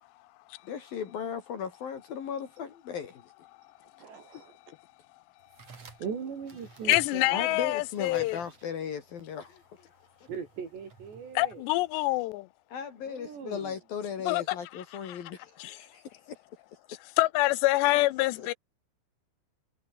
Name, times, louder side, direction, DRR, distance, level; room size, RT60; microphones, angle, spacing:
voice 1, 0.6-3.3 7.2-9.9 10.2-10.3 12.7-16.2 18.4-18.5, left 7 dB, 60° left, 4.0 m, -37 dB
voice 2, 4.0-4.7 6.0-7.7 10.3-11.6 13.1-13.8, right 6 dB, 80° right, 6.9 m, -40 dB
sound 1, 5.4-12.2, right 5 dB, 40° right, 4.3 m, -54 dB
voice 3, 6.9-8.4 11.4-12.5 14.3-14.6 15.1-15.2 15.6-15.8 17.2-18.5, left 19 dB, 85° left, 2.9 m, -26 dB
omnidirectional pair, 4.9 m